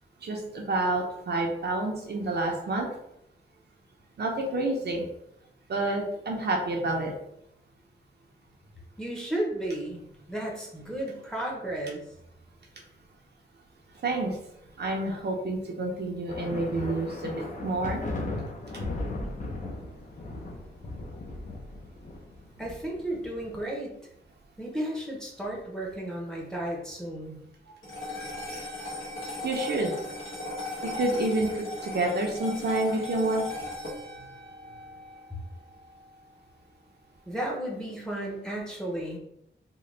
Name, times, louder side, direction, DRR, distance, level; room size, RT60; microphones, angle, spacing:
voice 1, 0.2-2.9 4.2-5.0 5.7-7.1 14.0-14.4 14.8-17.3 17.6-18.0 29.4-29.9 30.8-33.4, right 2 dB, 55° right, 0 dB, 0.7 m, -28 dB
voice 2, 9.0-10.0 10.3-12.0 22.6-24.0 24.6-27.4 37.3-39.2, right 1 dB, 5° left, -2 dB, 0.8 m, -33 dB
sound 1, 16.3-23.6, left 2 dB, 40° left, 0.6 m, -37 dB
sound 2, 27.8-36.3, left 2 dB, 70° left, 1.4 m, -38 dB
3.8 x 2.2 x 3.2 m, 0.79 s
wide cardioid pair, 130°, 20 cm